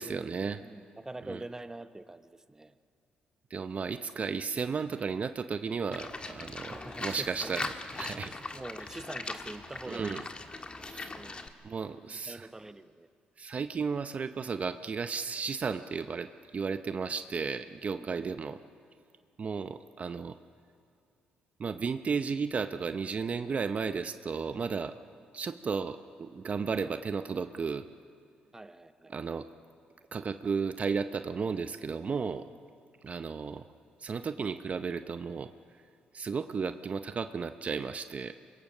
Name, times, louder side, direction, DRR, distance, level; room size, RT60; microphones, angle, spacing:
voice 1, 0.0-0.6 1.3-1.4 3.5-7.7 8.0-8.3 9.9-10.2 10.8-11.1 11.6-12.5 13.4-18.6 19.4-20.4 21.6-24.9 25.3-27.9 29.1-29.5 30.1-32.4 33.0-33.7 34.0-35.5 36.1-38.3, right 5 dB, 45° right, 10 dB, 0.7 m, -34 dB
voice 2, 0.6-2.7 6.7-7.6 8.2-10.3 10.8-11.5 12.1-13.1 18.0-18.3 28.5-29.1, right 2 dB, 15° right, 10 dB, 0.9 m, -45 dB
Livestock farm animals working animals, 5.9-11.5, left 3 dB, 30° left, 1.6 m, -40 dB
24.5 x 22.0 x 6.6 m, 2.4 s
cardioid pair, 70°, 3 cm